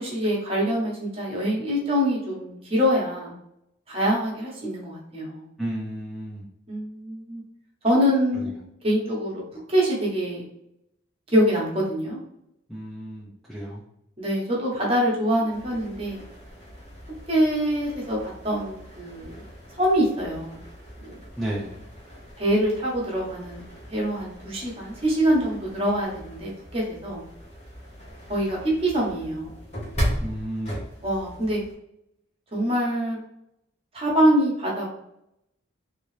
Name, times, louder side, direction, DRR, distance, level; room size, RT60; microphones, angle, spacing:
voice 1, 0.0-3.3 3.9-5.5 6.7-7.4 7.8-8.5 8.8-9.4 9.7-10.4 11.3-12.2 14.2-16.2 17.3-19.4 19.8-20.6 21.0-21.2 22.4-23.6 23.9-27.2 28.3-29.5 31.0-31.6 32.5-33.2 33.9-34.9, equal, 30° right, -3 dB, 1.1 m, -24 dB
voice 2, 5.6-6.5 8.3-8.5 12.7-13.8 21.4-21.7 30.2-30.8, right 1 dB, ahead, -7 dB, 0.6 m, -32 dB
sound 1, 15.5-31.7, equal, 35° left, 1.2 m, -38 dB
4.0 x 2.8 x 3.2 m, 0.78 s
head